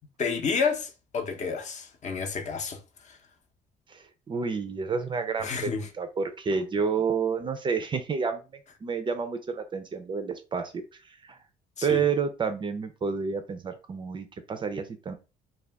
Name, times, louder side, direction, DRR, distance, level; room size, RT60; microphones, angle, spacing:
voice 1, 0.2-2.8 3.0-3.2 5.4-5.9 11.8-12.1, left 5 dB, 45° left, 0.7 m, -30 dB
voice 2, 3.9-8.4 8.8-11.4 11.8-15.1, right 5 dB, 30° right, 0.4 m, -30 dB
2.3 x 2.2 x 3.3 m
cardioid pair, 110°, 17 cm